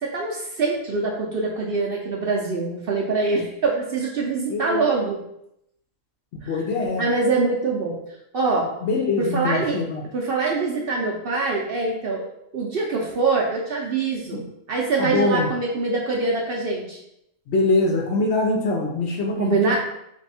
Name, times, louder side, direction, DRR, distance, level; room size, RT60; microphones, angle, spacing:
voice 1, 0.0-5.2 6.4-6.5 7.0-8.0 8.3-8.7 9.2-9.8 10.1-14.4 14.7-17.0 19.4-19.8, right 3 dB, 55° right, -2 dB, 0.7 m, -24 dB
voice 2, 4.5-4.9 6.4-7.1 8.8-10.0 14.3-14.4 15.0-15.5 17.5-19.8, left 3 dB, 60° left, 0 dB, 0.8 m, -23 dB
3.3 x 2.7 x 4.1 m, 0.78 s
omnidirectional pair, 1.4 m